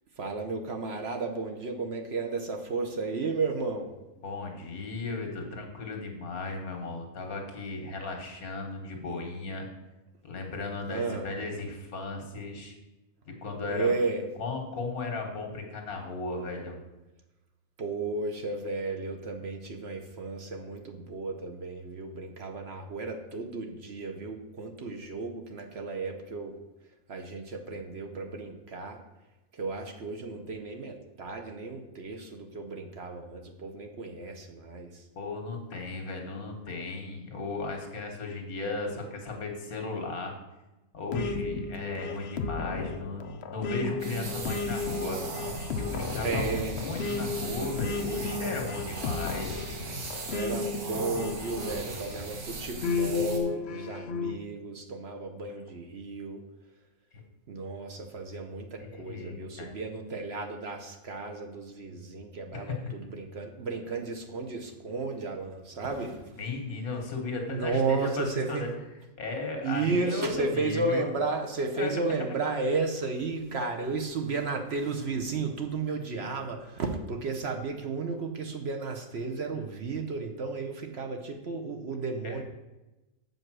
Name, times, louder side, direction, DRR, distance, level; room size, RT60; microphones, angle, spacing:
voice 1, 0.2-3.9 10.9-11.2 13.7-14.3 17.8-26.6 27.1-29.0 29.5-35.0 46.2-46.8 50.3-56.4 57.5-66.4 67.5-68.7 69.6-82.4, right 3 dB, 55° right, 4 dB, 0.9 m, -33 dB
voice 2, 4.2-9.7 10.2-12.7 13.3-13.9 14.4-16.8 35.2-40.3 40.9-45.2 45.8-49.7 58.8-59.7 62.5-62.9 66.4-68.7 69.2-71.1 71.8-72.2 82.2-82.4, left 3 dB, 75° left, 3 dB, 1.9 m, -36 dB
sound 1, 41.1-52.2 52.8-54.4, left 4 dB, 55° left, 0.7 m, -34 dB
sound 2, 44.0-53.4, right 3 dB, 90° right, 1.8 m, -38 dB
7.4 x 5.4 x 6.1 m, 1.0 s
omnidirectional pair, 1.5 m